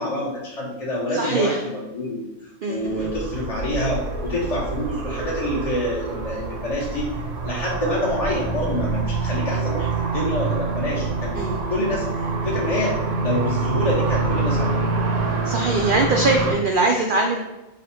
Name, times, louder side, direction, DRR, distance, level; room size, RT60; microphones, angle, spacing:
voice 1, 0.0-2.2 2.7-7.1 7.4-12.1 12.4-14.8, left 1 dB, 40° left, -5 dB, 0.6 m, -27 dB
voice 2, 1.1-1.6 2.6-3.1 11.3-11.6 15.5-17.4, right 2 dB, 85° right, 1 dB, 0.4 m, -22 dB
sound 1, 2.8-16.5, right 4 dB, 65° right, 1.0 m, -26 dB
5.0 x 2.1 x 4.2 m, 1.0 s
omnidirectional pair, 1.4 m